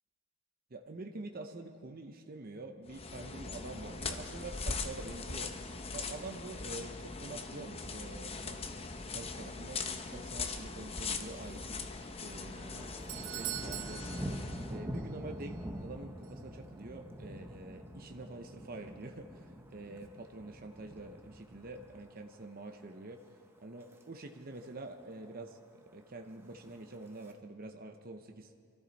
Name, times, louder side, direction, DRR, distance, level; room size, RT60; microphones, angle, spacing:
voice 1, 0.7-5.5 5.9-8.6 9.1-11.9 12.2-12.9 13.2-23.2 23.6-28.5, right 2 dB, 45° right, 4 dB, 0.7 m, -46 dB
sound 1, 2.9-14.8, left 4 dB, 25° left, 0.7 m, -41 dB
Thunder, 11.2-11.8 12.1-22.4 22.8-23.1 23.6-24.0 24.3-24.4 24.6-24.7 25.0-25.6 26.4-27.3, equal, 10° right, 0.9 m, -45 dB
Doorbell, 12.6-15.1 15.4-15.5 16.2-16.3, right 17 dB, 70° right, 0.4 m, -43 dB
24.5 x 13.5 x 4.1 m, 2.1 s
head